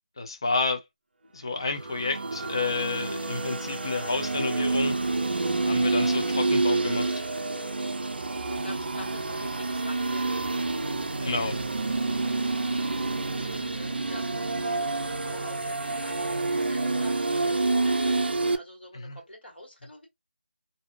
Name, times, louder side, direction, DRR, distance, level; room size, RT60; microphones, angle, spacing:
voice 1, 0.2-0.8 1.3-4.9 5.7-7.3 11.2-11.6 18.9-19.2, left 3 dB, 25° left, 0.4 m, -30 dB
sound 1, 1.6-18.6, right 3 dB, 70° right, 0.5 m, -28 dB
voice 2, 8.3-10.3 13.3-20.1, equal, 70° left, 1.7 m, -46 dB
sound 2, 8.5-16.6, right 1 dB, 20° right, 0.6 m, -45 dB
2.6 x 2.4 x 2.3 m
figure-of-eight pair, 170°, 6 cm